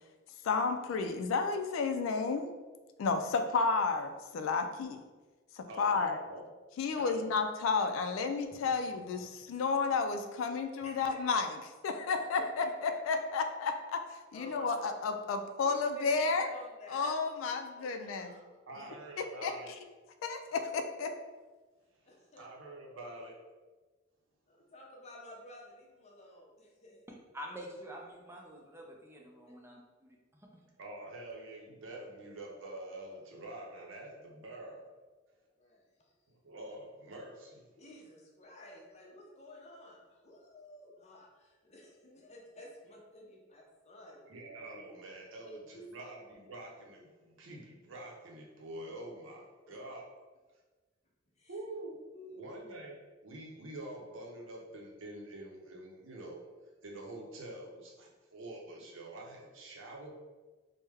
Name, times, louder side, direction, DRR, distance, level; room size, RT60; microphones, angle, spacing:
voice 1, 0.4-2.5 3.0-5.0 5.6-6.2 6.8-11.5 11.8-14.0 14.3-16.5 16.9-18.3 19.4-19.5 20.2-21.1, left 4 dB, 80° left, 7 dB, 0.3 m, -32 dB
voice 2, 5.7-6.4 6.9-7.3 18.7-19.7 22.4-23.3 30.8-34.8 36.3-37.7 44.3-50.1 51.5-52.0 52.3-56.4 56.8-60.2, right 1 dB, 75° right, -1 dB, 0.7 m, -46 dB
voice 3, 14.3-14.7 15.6-16.1 16.5-18.6 22.0-22.5 22.9-23.1 24.5-27.0 29.5-29.6 35.6-35.9 37.8-44.4 45.4-45.9 51.4-51.6 52.1-52.6, left 1 dB, 35° left, -2 dB, 0.6 m, -52 dB
voice 4, 27.3-30.6, equal, 15° right, 0 dB, 0.4 m, -47 dB
3.3 x 2.1 x 3.3 m, 1.3 s
head